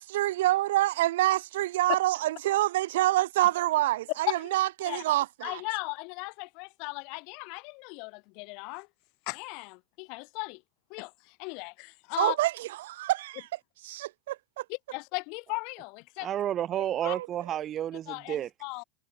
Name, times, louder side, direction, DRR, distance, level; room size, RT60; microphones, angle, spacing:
voice 1, 0.0-5.6 12.2-13.5 13.8-14.6 17.0-17.3, right 15 dB, 75° right, 0.7 m, -27 dB
voice 2, 4.8-5.1 5.4-8.9 9.3-10.6 10.9-12.4 14.7-16.4 17.0-17.2 18.1-18.8, left 33 dB, 55° left, 2.3 m, -37 dB
voice 3, 16.2-18.5, right 11 dB, 35° right, 2.3 m, -31 dB
supercardioid pair, 125°, 0 cm